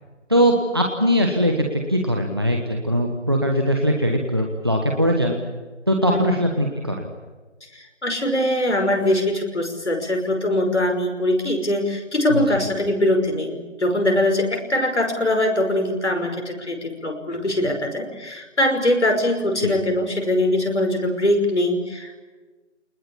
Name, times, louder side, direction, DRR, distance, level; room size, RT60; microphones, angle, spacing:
voice 1, 0.3-5.4 5.9-7.1 12.3-12.4 19.6-19.7, equal, 20° right, 1 dB, 1.2 m, -21 dB
voice 2, 8.0-22.2, left 1 dB, 70° left, 4 dB, 5.7 m, -22 dB
25.5 x 20.5 x 8.6 m, 1.3 s
figure-of-eight pair, 175°, 36 cm